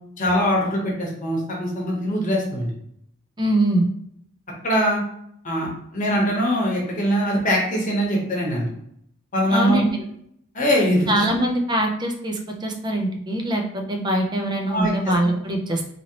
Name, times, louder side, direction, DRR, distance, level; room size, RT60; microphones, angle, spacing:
voice 1, 0.2-2.7 4.6-5.0 5.4-8.7 9.3-9.8 10.5-11.2 14.7-14.9, equal, 40° left, -3 dB, 0.9 m, -22 dB
voice 2, 3.4-3.9 9.5-9.9 11.1-15.9, right 1 dB, 20° right, 3 dB, 0.4 m, -23 dB
2.8 x 2.8 x 2.8 m, 0.71 s
head